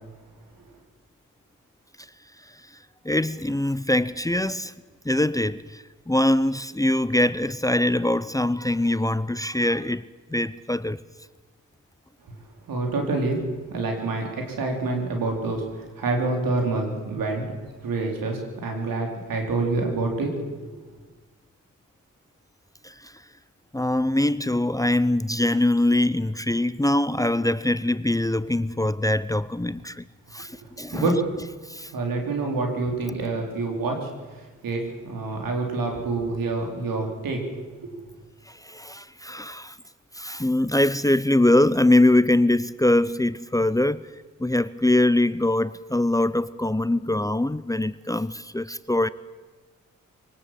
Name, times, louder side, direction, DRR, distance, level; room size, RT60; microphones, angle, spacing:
voice 1, 3.0-4.7 5.0-10.0 10.3-11.0 22.8-23.1 23.7-30.0 30.3-31.1 31.7-31.9 38.5-39.8 40.1-44.0 44.4-49.1, left 1 dB, 10° left, 0.7 m, -23 dB
voice 2, 12.7-17.5 17.8-20.4 30.9-31.2 31.9-34.1 34.4-37.4 37.8-37.9, right 3 dB, 85° right, 4.2 m, -27 dB
24.0 x 18.5 x 7.7 m
supercardioid pair, 45°, 33 cm